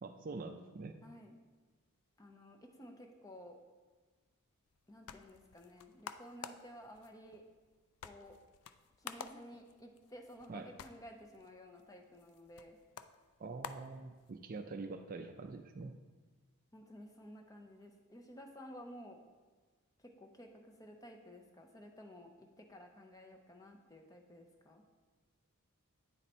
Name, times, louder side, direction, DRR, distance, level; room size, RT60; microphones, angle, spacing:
voice 1, 0.0-1.0 10.5-10.7 13.4-16.0, right 3 dB, 40° right, 6 dB, 0.3 m, -45 dB
voice 2, 1.0-1.3 2.2-3.6 4.9-7.4 8.0-8.4 9.0-12.8 16.7-19.2 20.0-24.8, equal, 15° left, 3 dB, 0.6 m, -54 dB
sound 1, 4.7-14.6, left 7 dB, 80° left, 0.4 m, -52 dB
9.1 x 4.0 x 4.3 m, 1.4 s
head